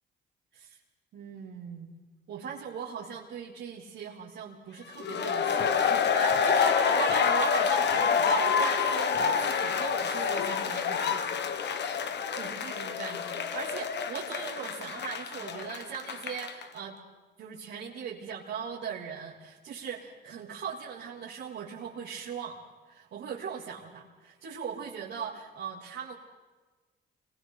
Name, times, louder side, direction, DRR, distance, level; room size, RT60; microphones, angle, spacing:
voice 1, 1.1-2.0 2.3-11.4 12.3-17.0 17.4-22.6 22.9-26.1, right 7 dB, 75° right, -7 dB, 3.4 m, -39 dB
sound 1, 5.0-16.6, left 6 dB, 60° left, 1.4 m, -27 dB
30.0 x 23.0 x 4.0 m, 1.3 s
cardioid pair, 90°, 20 cm